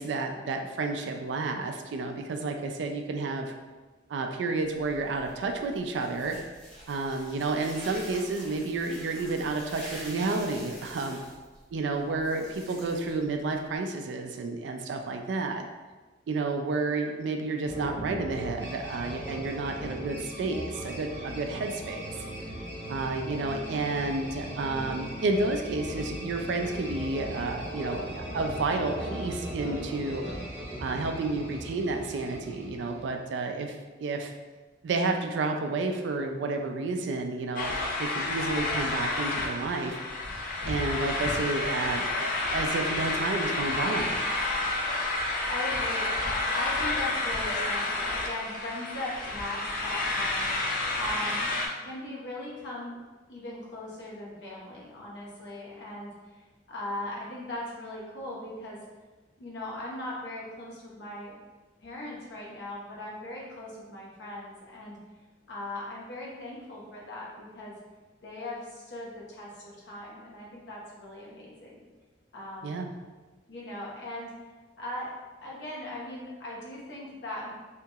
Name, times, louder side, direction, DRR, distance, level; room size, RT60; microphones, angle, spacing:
voice 1, 0.0-3.5 4.1-6.4 6.9-11.2 11.7-15.7 16.3-22.1 22.9-30.2 30.8-34.3 34.8-37.7 38.0-40.0 40.6-44.2 72.6-72.9, right 3 dB, 75° right, 4 dB, 0.3 m, -31 dB
sound 1, 4.6-13.8, equal, 5° left, 1.4 m, -47 dB
sound 2, 17.7-33.2, right 1 dB, 35° right, 1.2 m, -38 dB
sound 3, 37.6-51.7, left 2 dB, 50° left, 0.4 m, -30 dB
voice 2, 45.4-50.5 50.9-51.5 51.8-53.0 53.3-56.4 56.7-58.8 59.4-61.3 61.8-65.0 65.5-67.7 68.2-71.8 72.3-72.8 73.5-74.3 74.8-75.1 75.4-77.6, left 1 dB, 75° left, -4 dB, 0.7 m, -39 dB
2.8 x 2.8 x 2.3 m, 1.3 s
head